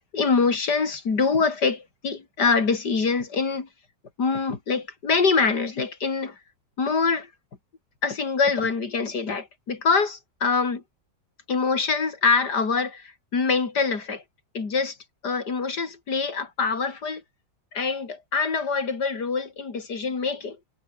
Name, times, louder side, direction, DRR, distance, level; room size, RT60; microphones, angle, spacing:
voice 1, 0.0-3.7 4.2-6.4 6.8-7.3 8.0-10.8 11.5-14.2 14.5-15.0 15.2-17.2 17.7-20.6, left 4 dB, 65° left, 3.6 m, -24 dB
omnidirectional pair, 1.9 m